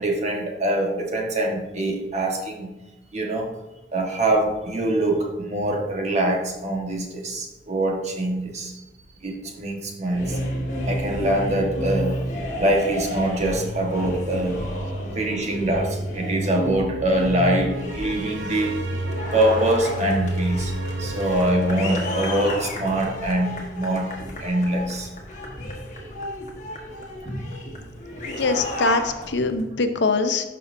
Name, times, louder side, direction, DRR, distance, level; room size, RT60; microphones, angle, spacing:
voice 1, 0.0-2.7 3.1-3.5 3.9-8.7 9.2-10.4 10.8-12.2 12.6-14.8 15.1-18.8 19.3-24.1 24.4-25.1, right 1 dB, 40° right, 1 dB, 1.4 m, -24 dB
sound 1, 10.0-29.6, equal, 45° left, 1.4 m, -31 dB
sound 2, 17.7-22.8, right 1 dB, 85° right, 0.7 m, -31 dB
voice 2, 28.3-30.5, left 3 dB, 75° left, 8 dB, 0.7 m, -23 dB
12.0 x 5.6 x 2.6 m, 1.0 s
head